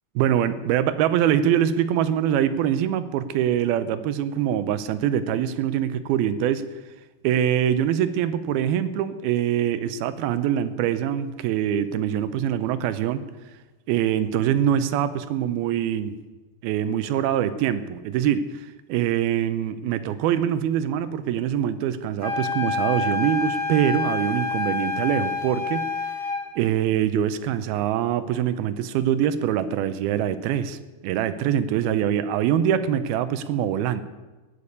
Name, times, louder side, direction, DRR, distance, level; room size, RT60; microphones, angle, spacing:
voice 1, 0.2-6.7 7.2-13.2 13.9-16.2 16.6-25.9 26.6-34.0, right 10 dB, 80° right, 13 dB, 2.5 m, -24 dB
sound 1, 22.2-26.5, left 3 dB, 30° left, 5.2 m, -27 dB
18.5 x 6.9 x 8.1 m, 1.2 s
omnidirectional pair, 4.6 m